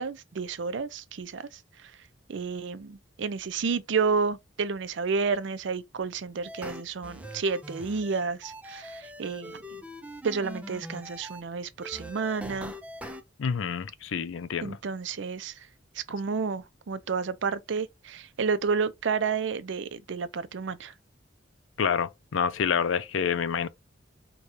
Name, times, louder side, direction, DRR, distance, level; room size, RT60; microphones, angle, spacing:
voice 1, 0.0-1.6 2.3-9.6 10.2-12.7 14.6-15.6 16.0-20.9, right 5 dB, 70° right, 0.5 m, -30 dB
sound 1, 6.4-11.4 11.8-13.2, equal, 5° right, 0.4 m, -42 dB
voice 2, 13.4-14.8 21.8-23.7, left 7 dB, 85° left, 0.5 m, -28 dB
4.8 x 2.3 x 2.6 m
head